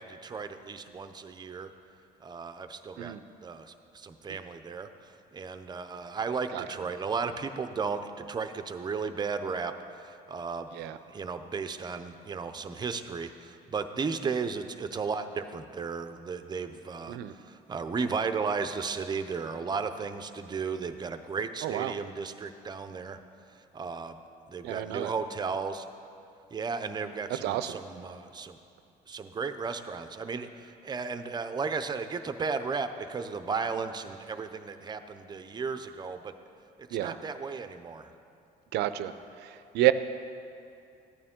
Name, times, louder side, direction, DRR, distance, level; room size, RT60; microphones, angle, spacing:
voice 1, 0.0-1.7 2.2-3.2 3.4-4.9 5.3-9.7 10.0-10.7 11.1-23.2 23.7-24.2 24.5-25.9 26.5-28.6 29.1-36.3 37.0-38.1, right 5 dB, 25° right, 9 dB, 0.6 m, -34 dB
voice 2, 21.6-21.9 24.6-25.1 27.4-27.8 36.9-37.2 38.7-39.1 39.4-39.9, right 14 dB, 85° right, 12 dB, 0.5 m, -29 dB
14.0 x 9.4 x 3.7 m, 2.6 s
cardioid pair, 110°, 17 cm